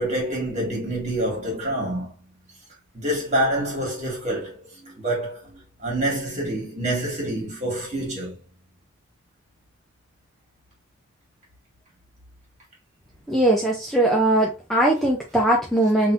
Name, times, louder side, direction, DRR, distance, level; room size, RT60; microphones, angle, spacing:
voice 1, 0.0-2.1 2.9-8.4, right 1 dB, 35° right, 1.7 m, -27 dB
voice 2, 13.3-16.1, right 1 dB, ahead, 0.5 m, -20 dB
3.8 x 2.7 x 2.5 m
head